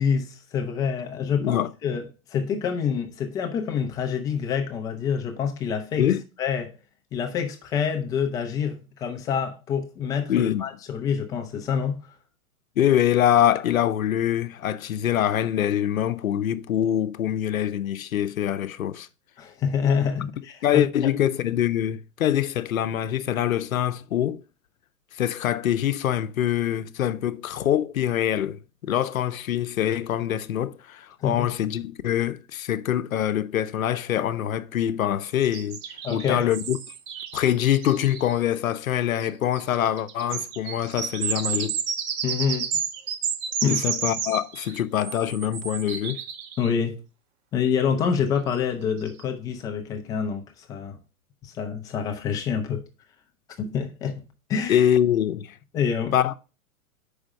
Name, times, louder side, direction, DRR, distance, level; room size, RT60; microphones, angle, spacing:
voice 1, 0.0-2.0 2.3-6.1 6.4-6.7 7.1-12.0 19.4-20.9 31.2-31.5 36.0-36.5 42.2-42.7 43.6-43.8 46.6-47.0 47.5-51.0 51.4-52.8 53.6-54.2 54.5-54.9 55.7-56.1, left 7 dB, 10° left, 0.4 m, -27 dB
voice 2, 1.4-1.7 6.0-6.2 10.3-10.7 12.8-19.1 20.6-24.4 25.1-35.8 36.1-36.8 37.3-41.8 43.7-46.2 54.7-55.6 56.1-56.3, left 11 dB, 70° left, 0.7 m, -24 dB
sound 1, 35.4-38.3 39.2-39.3 39.5-46.7 48.5-48.6 49.0-49.2, right 7 dB, 30° right, 0.7 m, -31 dB
5.1 x 5.0 x 6.3 m
figure-of-eight pair, 110°, 42 cm